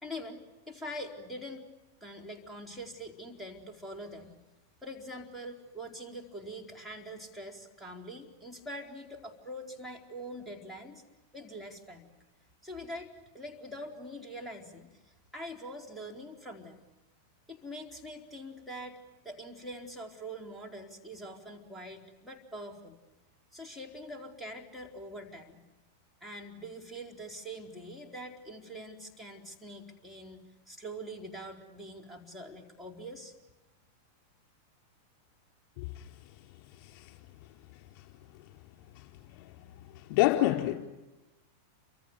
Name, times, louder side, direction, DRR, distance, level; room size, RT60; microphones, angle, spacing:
voice 1, 0.0-0.4 0.7-1.7 2.0-4.4 4.8-11.0 11.3-12.1 12.6-16.8 17.5-19.0 19.2-23.0 23.5-25.6 26.2-30.4 30.7-33.3, equal, 5° right, 4.1 m, -44 dB
voice 2, 35.8-36.1 36.8-37.1 37.9-38.1 38.9-39.6 39.9-40.7, left 15 dB, 45° left, 4.4 m, -29 dB
29.5 x 26.5 x 6.8 m
figure-of-eight pair, 90°, 0 cm